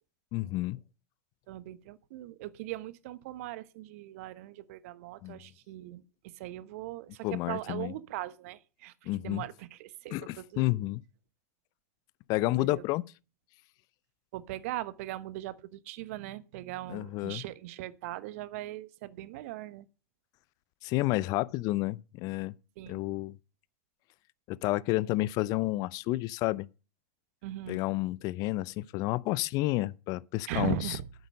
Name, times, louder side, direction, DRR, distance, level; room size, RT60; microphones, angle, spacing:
voice 1, 0.3-0.8 5.2-5.4 7.2-7.9 9.1-9.4 10.1-11.0 12.3-13.0 16.9-17.4 20.8-22.5 22.9-23.4 24.5-26.7 27.7-30.8, left 19 dB, 45° left, 0.5 m, -30 dB
voice 2, 1.5-10.8 12.6-12.8 14.3-19.9 22.8-23.0 27.4-27.8 30.5-31.1, right 14 dB, 60° right, 1.0 m, -39 dB
9.1 x 8.1 x 6.6 m
hypercardioid pair, 90°, 9 cm